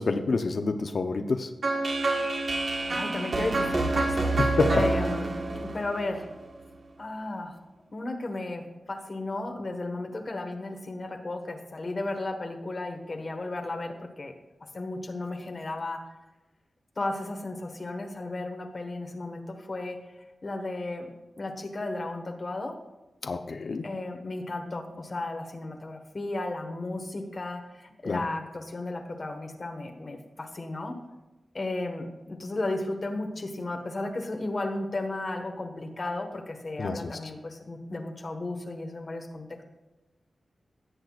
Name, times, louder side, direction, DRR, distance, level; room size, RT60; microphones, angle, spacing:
voice 1, 0.0-1.5 4.4-4.7 23.2-23.8 28.1-28.2 36.8-37.2, left 3 dB, 60° left, 6 dB, 0.7 m, -28 dB
sound 1, 1.6-6.6, right 2 dB, 55° right, 1.3 m, -28 dB
voice 2, 2.9-6.3 7.0-7.6 7.9-14.3 14.7-16.0 17.0-20.0 20.4-21.1 21.4-22.7 23.8-31.0 31.5-39.5, left 2 dB, 40° left, 4 dB, 1.4 m, -34 dB
17.0 x 7.8 x 2.4 m, 1.1 s
wide cardioid pair, 115°, 0 cm